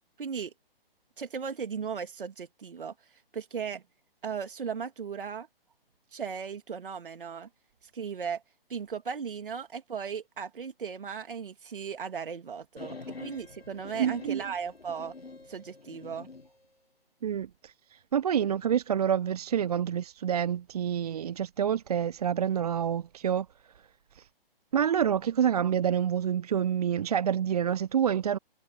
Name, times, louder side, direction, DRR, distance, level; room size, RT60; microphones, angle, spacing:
voice 1, 0.2-0.5 1.2-2.9 3.3-3.8 4.2-5.5 6.1-7.5 7.9-8.4 8.7-15.1 15.5-16.3, right 6 dB, 60° right, 3.3 m, -36 dB
sound 1, 12.8-16.5, left 3 dB, 90° left, 1.6 m, -46 dB
voice 2, 14.0-14.5 17.2-23.5 24.2-24.3 24.7-28.4, right 9 dB, 40° right, 0.4 m, -28 dB
figure-of-eight pair, 135°, 29 cm